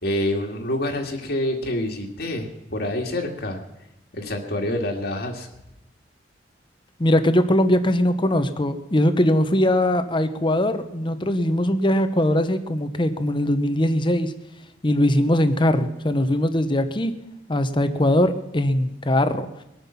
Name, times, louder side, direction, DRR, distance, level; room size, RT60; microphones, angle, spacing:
voice 1, 0.0-3.6 4.1-5.5, left 1 dB, 65° left, 1 dB, 1.9 m, -27 dB
voice 2, 7.0-14.3 14.8-17.1 17.5-19.5, left 1 dB, 30° left, 9 dB, 0.9 m, -21 dB
21.5 x 9.3 x 5.8 m, 0.91 s
head